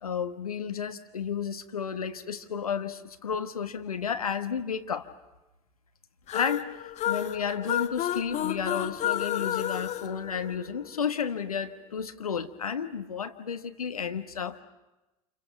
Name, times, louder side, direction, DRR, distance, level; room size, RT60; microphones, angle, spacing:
voice 1, 0.0-5.1 6.3-14.6, left 7 dB, 80° left, 9 dB, 1.2 m, -32 dB
sound 1, 6.3-11.0, left 11 dB, 40° left, 1.0 m, -31 dB
30.0 x 29.0 x 5.9 m, 1.0 s
figure-of-eight pair, 70°, 18 cm